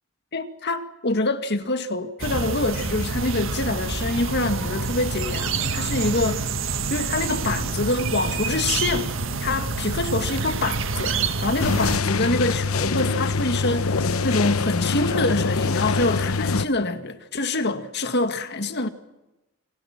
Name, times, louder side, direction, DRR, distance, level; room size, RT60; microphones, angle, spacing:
voice 1, 0.3-6.5 6.9-9.1 9.4-14.0 14.2-18.9, left 2 dB, 55° left, 2.0 m, -25 dB
sound 1, 2.2-12.0, right 4 dB, 65° right, 1.9 m, -27 dB
sound 2, 11.6-16.7, left 4 dB, 85° left, 1.0 m, -24 dB
30.0 x 24.5 x 6.0 m
head